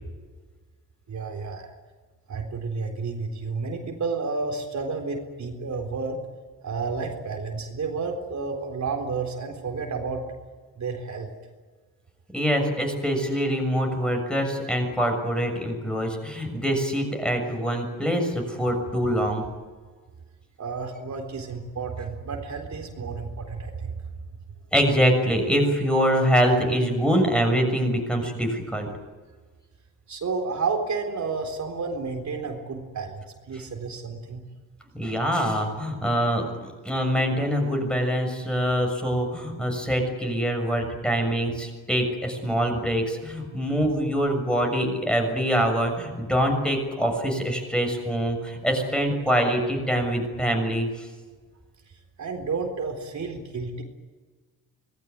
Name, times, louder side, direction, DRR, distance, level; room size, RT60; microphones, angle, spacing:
voice 1, 1.1-1.7 2.3-6.2 6.6-10.2 10.8-11.3 20.6-23.9 30.1-34.4 52.2-53.8, right 4 dB, 50° right, 3 dB, 3.9 m, -31 dB
voice 2, 12.3-19.4 24.7-28.9 34.9-51.1, equal, ahead, 3 dB, 6.7 m, -24 dB
26.0 x 20.0 x 9.6 m, 1.4 s
cardioid pair, 130°, 36 cm